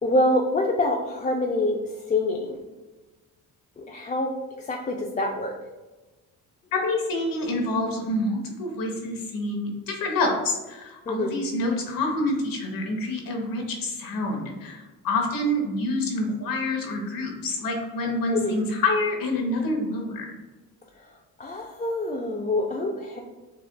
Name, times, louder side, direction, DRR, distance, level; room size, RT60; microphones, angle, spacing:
voice 1, 0.0-2.6 3.8-4.3 4.7-5.5 11.1-11.4 18.4-18.6 21.4-23.2, left 1 dB, 20° left, 0 dB, 0.4 m, -26 dB
voice 2, 6.7-20.3, left 2 dB, 70° left, 1 dB, 1.1 m, -27 dB
6.8 x 2.4 x 2.2 m, 1.2 s
cardioid pair, 85°, 35 cm